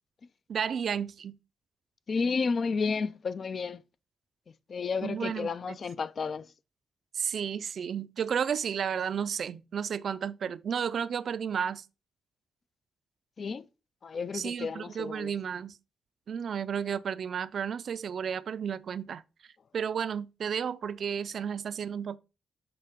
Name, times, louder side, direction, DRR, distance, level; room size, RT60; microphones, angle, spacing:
voice 1, 0.5-1.4 5.0-5.8 7.1-11.8 14.3-15.8 16.3-19.2 19.7-22.2, right 7 dB, 65° right, 0.4 m, -32 dB
voice 2, 2.1-3.8 4.7-6.4 13.4-13.7 14.0-15.3, left 5 dB, 50° left, 0.4 m, -31 dB
6.7 x 4.6 x 3.6 m
cardioid pair, 100°, 0 cm